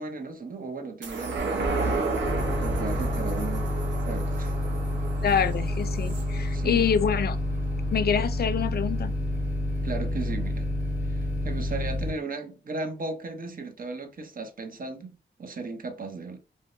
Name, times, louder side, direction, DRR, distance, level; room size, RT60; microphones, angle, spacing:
voice 1, 0.0-2.1 2.6-3.7 4.1-4.5 6.5-6.9 9.8-10.7 11.1-15.1 15.4-16.4, right 3 dB, 50° right, 0.7 m, -36 dB
sound 1, 1.0-7.8 8.2-8.3, right 3 dB, 90° right, 0.6 m, -32 dB
sound 2, 2.2-12.1, left 1 dB, 10° right, 1.3 m, -29 dB
voice 2, 5.2-7.4 7.9-9.1, left 7 dB, 60° left, 0.4 m, -26 dB
2.6 x 2.2 x 2.4 m
cardioid pair, 55°, 19 cm